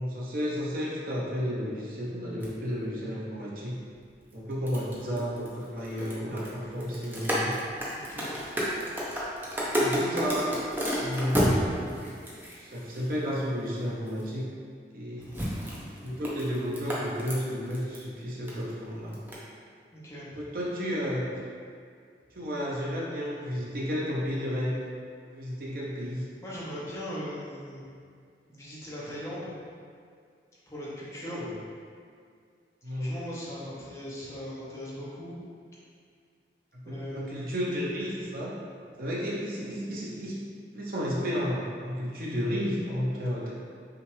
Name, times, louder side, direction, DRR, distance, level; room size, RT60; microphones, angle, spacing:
voice 1, 0.0-3.8 4.3-7.5 9.6-10.6 10.9-11.6 12.6-14.4 14.9-15.3 16.0-19.2 20.4-21.3 22.3-24.8 25.3-26.3 31.2-31.6 32.8-33.2 36.7-38.5 39.0-40.4 40.7-43.5, equal, 55° right, -5 dB, 0.7 m, -32 dB
sound 1, 2.4-2.5 4.2-13.4 14.1-14.2 15.2-18.0 18.3-18.7 19.1-19.3, equal, 10° right, 0.6 m, -31 dB
voice 2, 7.9-8.4 15.1-15.5 19.9-20.4 26.4-27.8 28.5-29.5 30.7-31.4 32.8-35.3 36.8-37.5, equal, 15° left, -8 dB, 0.8 m, -39 dB
5.6 x 2.5 x 3.2 m, 2.2 s
head